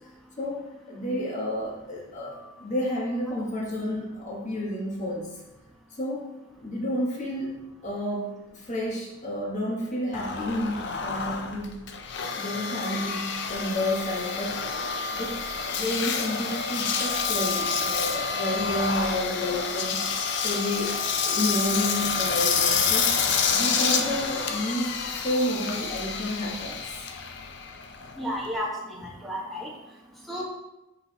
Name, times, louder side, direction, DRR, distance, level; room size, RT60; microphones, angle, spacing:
voice 1, 0.9-5.3 6.0-6.3 6.6-7.6 7.8-11.7 12.4-14.7 15.1-15.4 15.7-20.2 20.4-23.1 23.5-26.8, left 1 dB, 40° left, -3 dB, 1.4 m, -30 dB
Engine, 10.1-28.6, left 5 dB, 60° left, 0.5 m, -28 dB
voice 2, 28.2-29.7 30.3-30.4, equal, ahead, -4 dB, 1.3 m, -32 dB
5.8 x 4.6 x 4.1 m, 0.95 s
head